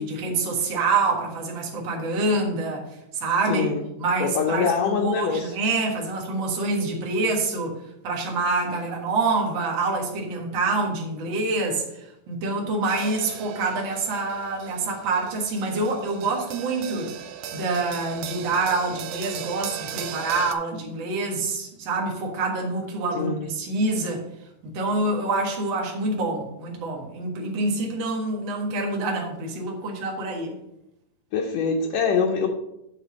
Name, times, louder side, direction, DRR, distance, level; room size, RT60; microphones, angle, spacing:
voice 1, 0.0-2.9 3.2-3.7 4.0-7.7 8.0-17.1 17.5-24.3 24.6-30.6, right 3 dB, 45° right, -1 dB, 1.9 m, -26 dB
voice 2, 3.5-3.8 4.2-5.5 23.1-23.5 31.3-32.5, left 5 dB, 70° left, 0 dB, 1.9 m, -24 dB
sound 1, 12.9-20.5, right 8 dB, 75° right, 1.6 m, -37 dB
9.3 x 3.8 x 6.2 m, 0.85 s
omnidirectional pair, 3.4 m